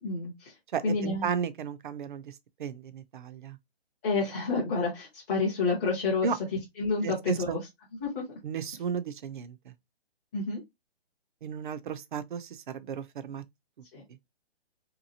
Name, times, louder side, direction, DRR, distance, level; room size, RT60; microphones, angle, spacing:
voice 1, 0.0-0.5 0.8-1.3 4.0-6.3 6.8-7.6 8.0-8.2 10.3-10.6 13.9-14.0, left 3 dB, 15° left, 0.6 m, -29 dB
voice 2, 0.7-3.6 6.2-6.4 7.0-7.6 8.4-9.7 11.4-13.4, right 7 dB, 50° right, 0.4 m, -34 dB
2.9 x 2.3 x 2.6 m
hypercardioid pair, 155°, 32 cm